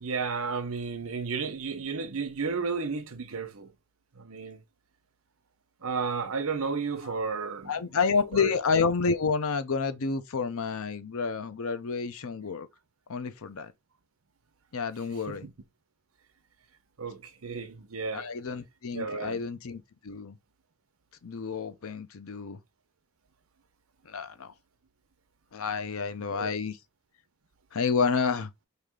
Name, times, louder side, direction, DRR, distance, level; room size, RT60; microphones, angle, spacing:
voice 1, 0.0-3.7 4.2-4.6 5.8-7.7 8.3-8.5 15.3-15.5 17.0-18.3 18.9-19.4 26.3-26.5, right 5 dB, 65° right, 0.8 m, -33 dB
voice 2, 7.7-12.7 13.1-13.7 14.7-15.5 18.1-20.4 21.2-22.6 24.1-24.5 25.5-26.8 27.7-28.5, left 5 dB, 65° left, 0.6 m, -29 dB
4.9 x 2.8 x 3.6 m
head